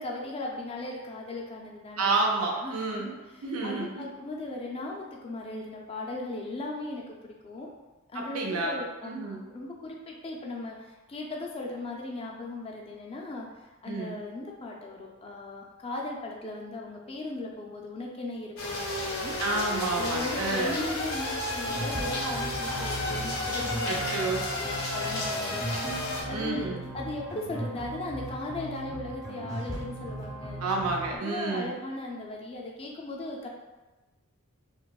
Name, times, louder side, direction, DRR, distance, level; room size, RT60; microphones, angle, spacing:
voice 1, 0.0-7.7 8.1-19.3 20.0-26.0 26.3-30.6 31.1-33.5, left 2 dB, 25° left, -1 dB, 0.3 m, -38 dB
voice 2, 2.0-3.1 3.4-4.0 8.1-8.8 9.0-9.4 13.9-14.2 19.4-20.7 23.8-24.4 26.3-26.8 30.6-31.7, right 3 dB, 80° right, 0 dB, 0.6 m, -30 dB
sound 1, 18.6-26.2, left 2 dB, 75° left, 0.7 m, -32 dB
sound 2, 21.7-31.2, right 1 dB, 15° right, 0.6 m, -38 dB
4.6 x 2.0 x 2.2 m, 1.1 s
head